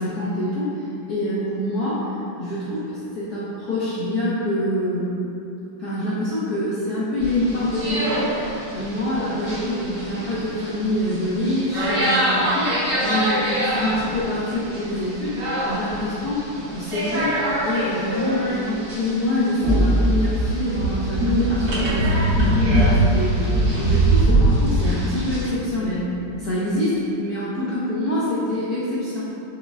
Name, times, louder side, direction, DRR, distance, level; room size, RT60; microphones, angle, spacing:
voice 1, 0.0-2.8 3.1-5.2 5.8-8.3 8.7-12.7 13.0-15.3 15.6-16.4 16.7-17.3 17.6-26.1 26.4-29.2, left 1 dB, 80° left, -9 dB, 0.8 m, -25 dB
sound 1, 7.2-25.5, right 1 dB, 75° right, 1.9 m, -27 dB
sound 2, 19.6-24.6, right 1 dB, 50° right, 0.6 m, -20 dB
6.1 x 2.0 x 2.3 m, 2.8 s
omnidirectional pair, 2.3 m